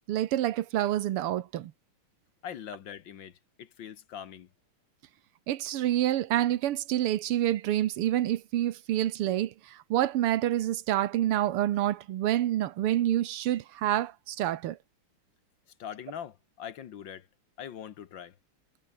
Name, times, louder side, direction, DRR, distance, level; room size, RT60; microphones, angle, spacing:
voice 1, 0.1-1.7 5.5-14.8, right 12 dB, 85° right, 1.9 m, -27 dB
voice 2, 2.4-4.5 15.8-17.3 17.6-18.3, left 9 dB, 60° left, 1.8 m, -42 dB
omnidirectional pair, 2.4 m